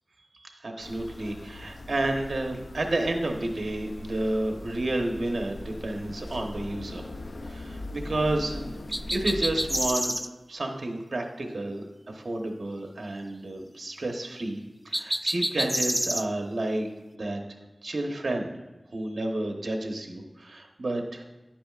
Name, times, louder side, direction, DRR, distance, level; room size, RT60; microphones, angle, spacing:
voice 1, 0.4-7.1 7.5-8.7 9.1-14.6 14.8-16.9 17.1-17.4 17.8-18.6 18.9-21.2, right 1 dB, 75° right, 2 dB, 1.0 m, -31 dB
sound 1, 0.8-9.9, left 2 dB, 70° left, 0.5 m, -40 dB
sound 2, 8.9-10.3 14.9-16.2, equal, 10° right, 0.3 m, -28 dB
10.5 x 8.7 x 2.4 m, 1.1 s
wide cardioid pair, 60°, 0 cm